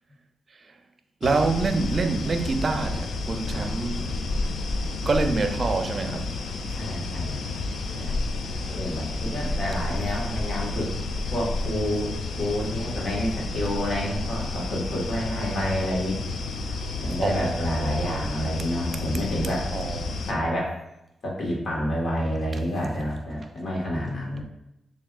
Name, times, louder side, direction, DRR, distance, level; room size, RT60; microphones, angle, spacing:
sound 1, 1.2-20.3, left 3 dB, 80° left, 0.4 m, -30 dB
voice 1, 1.2-4.2 5.1-6.3 9.2-9.8 17.2-18.3 19.7-20.2, right 3 dB, 50° right, 0.5 m, -27 dB
voice 2, 6.7-7.6 8.0-8.4 8.7-10.9 11.3-16.2 17.0-19.7 20.3-20.7 21.2-24.4, equal, 60° left, 1.5 m, -29 dB
6.8 x 2.7 x 2.4 m
cardioid pair, 60°, 0 cm